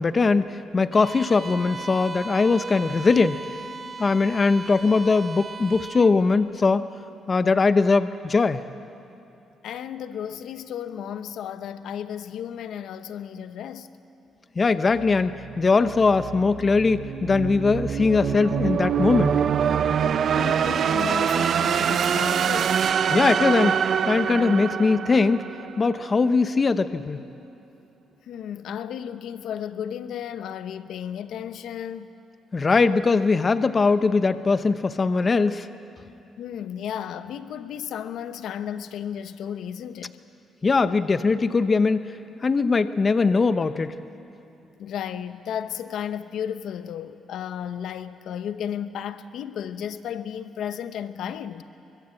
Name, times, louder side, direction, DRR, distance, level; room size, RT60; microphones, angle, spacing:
voice 1, 0.0-3.4 4.0-6.9 7.3-8.6 14.6-19.4 23.1-25.4 25.8-27.2 32.5-35.7 40.6-42.1 42.4-44.0, left 4 dB, 35° left, 0.8 m, -21 dB
Bowed string instrument, 0.9-6.2, right 4 dB, 35° right, 1.8 m, -38 dB
voice 2, 9.6-13.9 20.3-22.8 28.2-32.1 36.4-40.2 44.8-51.6, left 9 dB, 75° left, 1.0 m, -34 dB
sound 1, 15.0-26.0, right 8 dB, 60° right, 0.7 m, -25 dB
25.0 x 24.0 x 7.9 m
cardioid pair, 90°, 0 cm